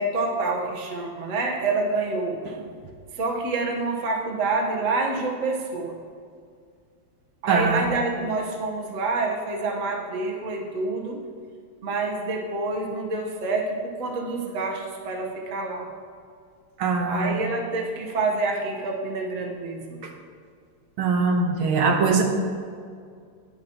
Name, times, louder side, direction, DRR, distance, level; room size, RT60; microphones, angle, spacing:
voice 1, 0.0-2.4 3.1-6.0 7.4-11.2 11.8-15.9 17.1-20.0, right 3 dB, 45° right, 0 dB, 1.4 m, -27 dB
voice 2, 7.5-7.9 16.8-17.3 21.0-22.2, right 4 dB, 85° right, 2 dB, 1.8 m, -21 dB
12.0 x 9.7 x 2.9 m, 2.1 s
omnidirectional pair, 2.2 m